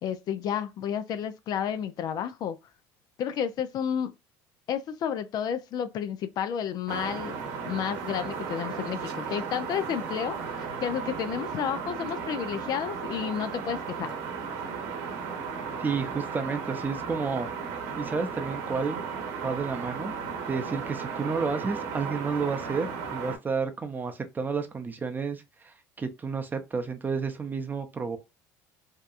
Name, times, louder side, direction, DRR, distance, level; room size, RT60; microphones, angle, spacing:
voice 1, 0.0-2.6 3.2-4.1 4.7-7.3 7.6-10.4 10.8-14.1, left 8 dB, 50° left, 0.4 m, -31 dB
sound 1, 6.9-23.4, right 6 dB, 75° right, 0.8 m, -35 dB
voice 2, 15.8-17.5 18.0-19.0 19.4-20.1 20.5-28.2, right 5 dB, 20° right, 0.6 m, -31 dB
2.8 x 2.2 x 2.4 m
supercardioid pair, 90°, 9 cm